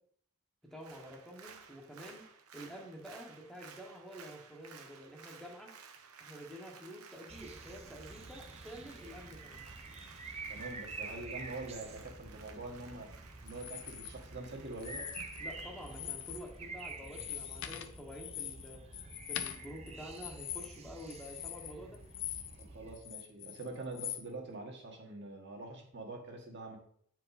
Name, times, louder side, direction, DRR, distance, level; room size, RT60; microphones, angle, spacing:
voice 1, 0.7-2.2 2.5-5.7 6.2-9.6 15.4-18.8 19.3-22.0, equal, ahead, -1 dB, 1.1 m, -49 dB
Applause, 0.7-17.3 17.7-17.8, right 6 dB, 90° right, 0.9 m, -56 dB
sound 1, 7.3-23.0, right 3 dB, 30° right, 0.7 m, -48 dB
voice 2, 10.5-13.1 13.4-15.3 22.6-26.8, right 2 dB, 55° right, 1 dB, 1.5 m, -45 dB
sound 2, 13.5-14.1 14.7-15.5 15.8-16.5 16.8-22.6 22.9-24.2, left 11 dB, 60° left, 0.6 m, -43 dB
8.5 x 4.6 x 4.1 m, 0.62 s
head